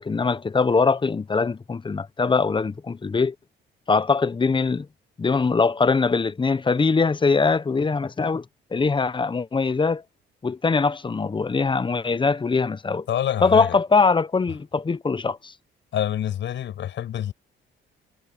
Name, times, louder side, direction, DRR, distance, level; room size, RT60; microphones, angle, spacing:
voice 1, 0.0-3.3 3.9-4.9 5.2-8.4 8.7-10.0 10.4-13.1 13.4-15.5, left 4 dB, 25° left, 0.9 m, -22 dB
voice 2, 13.1-13.8 15.9-17.3, left 10 dB, 70° left, 5.9 m, -26 dB
cardioid pair, 90°, 20 cm